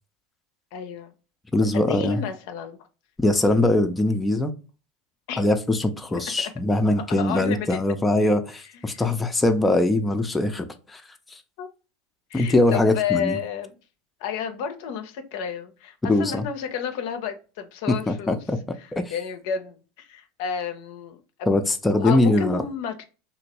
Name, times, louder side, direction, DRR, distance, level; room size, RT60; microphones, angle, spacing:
voice 1, 0.7-1.1 1.7-2.8 5.3-5.4 7.2-7.8 8.9-9.1 11.6-11.7 12.3-13.7 14.2-18.4 18.8-21.6 22.0-23.1, left 8 dB, 65° left, 0.5 m, -31 dB
voice 2, 1.5-2.2 3.2-4.5 5.4-11.0 11.3-11.4 12.3-13.4 16.0-16.4 18.1-18.6 18.9-19.1 21.5-22.6, left 2 dB, 15° left, 0.4 m, -22 dB
2.8 x 2.6 x 2.8 m
hypercardioid pair, 80°, 0 cm